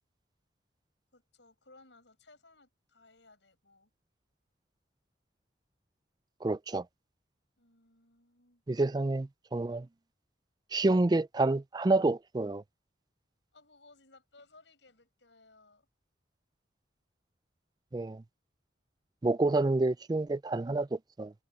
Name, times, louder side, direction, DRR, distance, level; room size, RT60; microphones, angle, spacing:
voice 1, 1.1-3.9 7.6-8.6 13.5-15.9, left 3 dB, 75° left, 7.9 m, -61 dB
voice 2, 6.4-6.8 8.7-9.9 10.7-12.6 17.9-18.2 19.2-21.3, right 2 dB, 20° right, 0.4 m, -28 dB
head